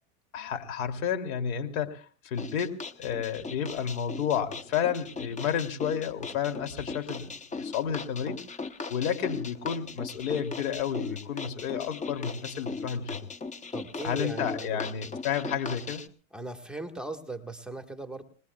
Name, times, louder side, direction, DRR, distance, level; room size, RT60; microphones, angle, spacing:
voice 1, 0.3-8.4 8.9-13.2 14.0-16.0, left 8 dB, 80° left, 7 dB, 3.0 m, -31 dB
sound 1, 2.4-16.1, left 4 dB, 15° left, 0.9 m, -39 dB
voice 2, 13.7-14.9 16.3-18.2, right 2 dB, ahead, 5 dB, 1.6 m, -38 dB
29.5 x 20.0 x 2.4 m, 0.40 s
supercardioid pair, 130°, 41 cm